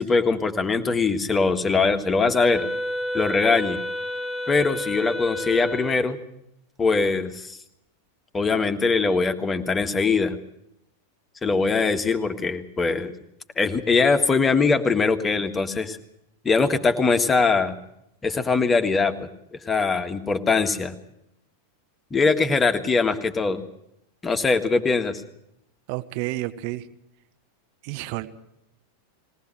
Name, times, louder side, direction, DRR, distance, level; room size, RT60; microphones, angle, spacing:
voice 1, 0.0-2.7 3.1-3.8 4.5-6.2 6.8-7.6 8.3-10.4 11.4-13.1 13.6-16.0 16.4-17.7 18.2-19.1 19.7-20.9 22.1-23.6 24.2-25.2, left 4 dB, 15° left, 7 dB, 1.6 m, -22 dB
Wind instrument woodwind instrument, 2.3-6.2, left 1 dB, 5° right, 1.3 m, -30 dB
voice 2, 25.9-26.9 27.8-28.3, right 18 dB, 45° right, 10 dB, 1.1 m, -30 dB
21.0 x 18.0 x 7.7 m, 0.80 s
figure-of-eight pair, 90°, 0 cm